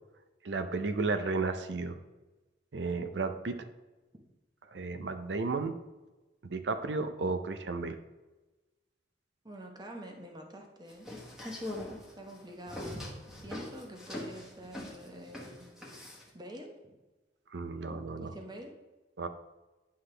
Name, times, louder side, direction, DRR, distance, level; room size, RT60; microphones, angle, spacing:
voice 1, 0.4-2.0 2.7-3.5 4.7-5.8 6.4-8.0 17.5-18.3 19.2-19.3, right 3 dB, 70° right, 9 dB, 0.6 m, -33 dB
voice 2, 9.4-11.1 12.2-13.1 13.4-15.7 16.3-16.9 17.9-18.7, right 1 dB, 25° right, 2 dB, 1.0 m, -47 dB
sound 1, 10.9-16.3, left 1 dB, 5° right, 1.4 m, -42 dB
9.7 x 5.7 x 3.3 m, 1.1 s
head